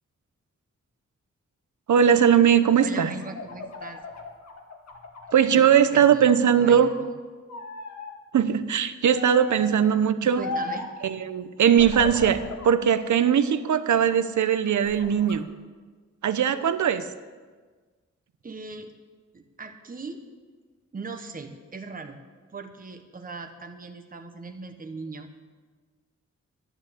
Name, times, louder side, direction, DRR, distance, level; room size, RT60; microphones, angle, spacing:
voice 1, 1.9-3.1 5.3-6.9 8.3-10.4 11.0-15.5 16.2-17.0, right 8 dB, 85° right, 12 dB, 0.8 m, -20 dB
sound 1, 2.6-5.8 6.2-7.1 7.5-8.1 9.1-9.7 10.4-11.0 11.7-12.8 13.2-14.2 14.7-15.4, left 3 dB, 70° left, 1.8 m, -37 dB
voice 2, 2.8-4.0 5.5-7.1 10.2-10.8 18.4-18.9 19.3-20.2 20.9-22.2 22.5-25.3, right 4 dB, 30° right, 6 dB, 1.1 m, -39 dB
12.5 x 10.0 x 8.2 m, 1.4 s
wide cardioid pair, 170°, 29 cm